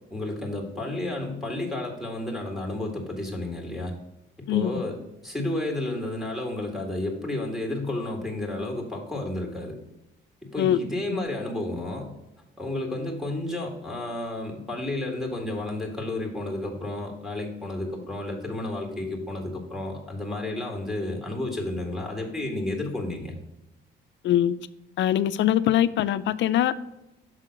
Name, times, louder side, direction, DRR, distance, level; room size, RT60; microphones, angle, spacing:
voice 1, 0.1-3.9 4.5-5.0 5.2-9.8 10.4-12.1 12.6-23.3, left 2 dB, ahead, 0 dB, 1.9 m, -31 dB
voice 2, 24.2-24.6 25.0-26.8, left 11 dB, 70° left, 15 dB, 0.4 m, -22 dB
6.4 x 3.8 x 6.2 m, 0.94 s
cardioid pair, 90°, 20 cm